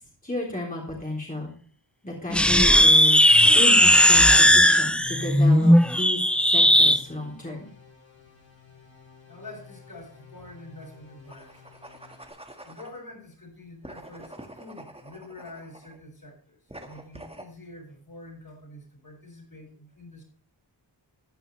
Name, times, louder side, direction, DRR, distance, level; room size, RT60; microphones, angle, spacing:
voice 1, 0.2-1.5 2.0-3.2 3.5-6.2 6.5-7.7, left 1 dB, 20° left, -2 dB, 3.5 m, -32 dB
sound 1, 2.3-7.0, equal, 5° left, 0.4 m, -17 dB
sound 2, 5.0-12.3, left 6 dB, 75° left, 5.2 m, -52 dB
voice 2, 9.2-11.7 12.6-20.2, left 2 dB, 50° left, -1 dB, 7.0 m, -46 dB
sound 3, 11.2-13.0 13.8-16.0 16.7-17.5, right 1 dB, 15° right, 1.8 m, -46 dB
14.0 x 10.0 x 3.3 m, 0.43 s
wide cardioid pair, 85°, 45 cm